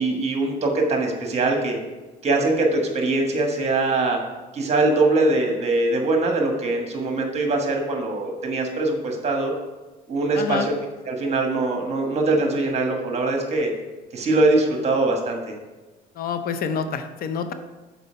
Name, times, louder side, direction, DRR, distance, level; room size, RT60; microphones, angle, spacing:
voice 1, 0.0-1.8 2.2-4.2 4.5-9.5 10.1-10.7 11.0-13.7 14.1-15.5, right 2 dB, 40° right, 2 dB, 1.5 m, -22 dB
voice 2, 10.3-10.7 16.2-17.5, left 6 dB, 60° left, 9 dB, 0.6 m, -27 dB
6.7 x 4.5 x 5.7 m, 1.2 s
cardioid pair, 110°, 17 cm